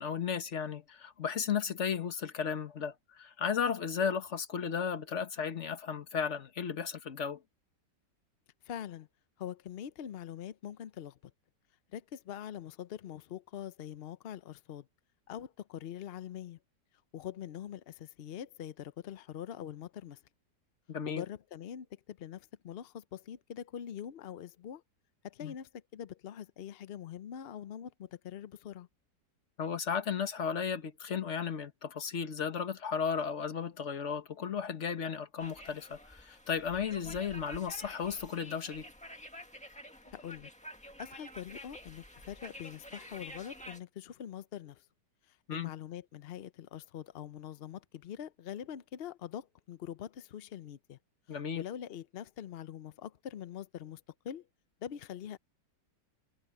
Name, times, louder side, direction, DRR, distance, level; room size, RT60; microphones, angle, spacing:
voice 1, 0.0-7.4 20.9-21.2 25.4-25.5 29.6-38.9 45.5-45.7 51.3-51.6, left 7 dB, 45° left, 1.4 m, -34 dB
voice 2, 8.6-9.1 9.4-11.2 11.9-14.9 15.3-16.6 17.1-20.2 21.1-24.8 25.2-28.9 37.1-37.3 40.1-40.5 41.0-44.8 45.3-51.0 51.5-54.4 54.8-55.4, left 10 dB, 80° left, 0.5 m, -44 dB
sound 1, 35.4-43.8, equal, 5° left, 1.6 m, -49 dB
omnidirectional pair, 1.9 m